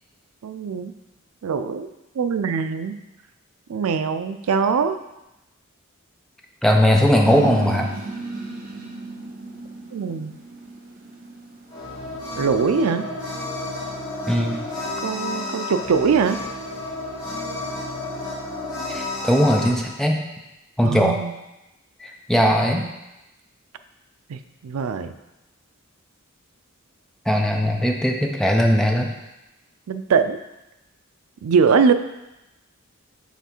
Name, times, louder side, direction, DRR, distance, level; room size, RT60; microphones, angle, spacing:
voice 1, 0.4-0.9 1.4-1.9 2.1-3.0 3.7-5.0 9.9-10.4 12.4-13.1 15.0-16.4 20.8-21.3 24.3-25.1 29.9-30.4 31.4-31.9, right 5 dB, 90° right, 10 dB, 0.4 m, -22 dB
voice 2, 6.6-7.9 14.3-14.6 18.9-20.2 20.8-21.2 22.0-22.9 27.3-29.1, equal, ahead, 1 dB, 0.5 m, -19 dB
sound 1, 7.2-12.3, right 3 dB, 40° right, 0.9 m, -34 dB
sound 2, 11.7-19.7, left 2 dB, 20° left, 2.1 m, -31 dB
5.8 x 4.0 x 4.4 m, 0.96 s
head